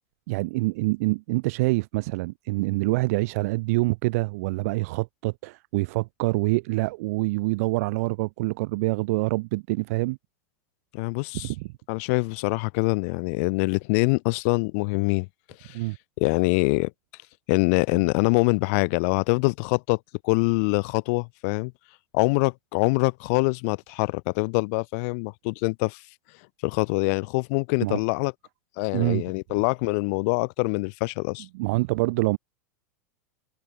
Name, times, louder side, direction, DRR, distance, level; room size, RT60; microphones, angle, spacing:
voice 1, 0.3-10.2 11.4-11.7 15.7-16.0 27.8-28.0 28.9-29.2 31.5-32.4, right 23 dB, 55° right, 0.4 m, -26 dB
voice 2, 10.9-11.5 11.9-15.3 15.6-15.8 16.2-16.9 17.5-21.7 22.1-26.0 26.6-28.3 28.8-31.5, left 31 dB, 55° left, 1.5 m, -24 dB
supercardioid pair, 145°, 9 cm